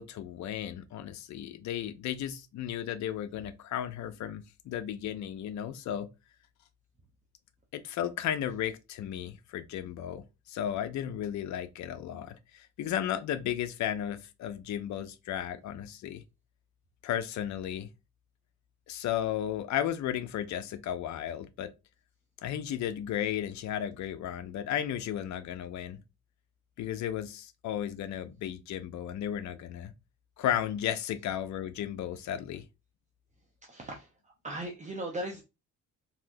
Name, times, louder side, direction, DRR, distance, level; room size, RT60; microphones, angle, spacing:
voice 1, 0.0-6.1 7.7-16.2 17.0-17.9 18.9-21.7 22.4-26.0 26.8-29.9 30.4-32.6, left 10 dB, 70° left, 0.5 m, -34 dB
voice 2, 33.6-35.4, right 1 dB, 25° right, 0.7 m, -38 dB
3.4 x 2.7 x 2.6 m
cardioid pair, 90°, 30 cm